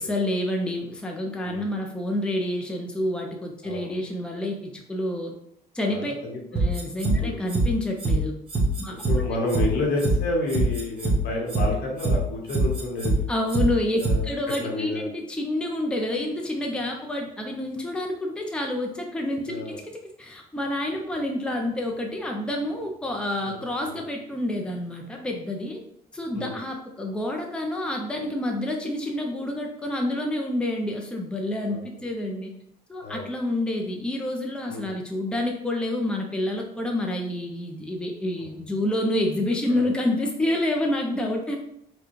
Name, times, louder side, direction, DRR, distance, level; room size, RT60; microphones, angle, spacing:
voice 1, 0.0-5.3 5.7-6.1 6.5-8.3 8.8-9.0 13.3-25.8 26.1-32.5 32.9-41.6, left 1 dB, 5° left, 1 dB, 0.5 m, -28 dB
voice 2, 3.6-4.0 5.9-6.7 7.2-7.5 9.1-13.2 14.0-14.3 14.6-15.0 19.5-19.8 23.4-24.0 26.3-26.6 31.7-31.8 33.0-33.3 34.7-34.9 39.7-39.8, left 2 dB, 75° left, -1 dB, 1.2 m, -30 dB
sound 1, 6.6-7.2 7.5-7.6 8.0-8.1 8.5-9.1 9.5-9.6 10.0-10.2 10.5-11.2 11.5-11.6 12.0-12.1 12.5-13.2 13.5-13.6 14.0-14.2 14.5-14.6, right 3 dB, 30° right, 1.2 m, -23 dB
4.6 x 2.3 x 3.1 m, 0.73 s
cardioid pair, 110°, 17 cm